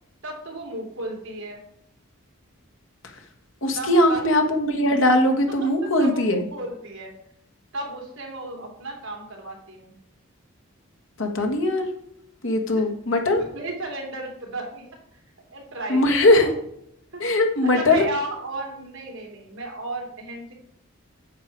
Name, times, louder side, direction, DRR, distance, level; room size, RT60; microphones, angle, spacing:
voice 1, 0.2-1.6 3.7-4.2 5.5-7.1 7.7-9.9 12.7-12.8 13.3-15.2 15.5-16.5 17.1-17.2 17.6-20.5, right 2 dB, 70° right, 1 dB, 2.9 m, -34 dB
voice 2, 3.6-6.4 11.2-11.9 12.4-13.4 15.9-16.5 17.2-18.1, left 1 dB, 65° left, 4 dB, 1.6 m, -20 dB
9.4 x 6.6 x 4.7 m, 0.73 s
head